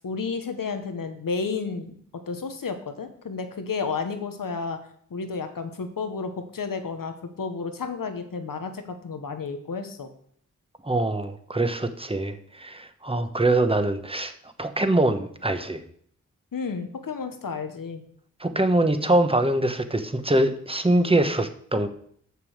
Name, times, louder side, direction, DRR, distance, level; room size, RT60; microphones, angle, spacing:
voice 1, 0.0-4.8 5.1-10.1 16.5-18.0, left 5 dB, 85° left, 8 dB, 1.1 m, -32 dB
voice 2, 10.8-14.3 14.6-15.8 18.4-21.9, right 1 dB, 15° right, 8 dB, 1.1 m, -23 dB
6.9 x 6.7 x 6.6 m, 0.63 s
cardioid pair, 40°, 32 cm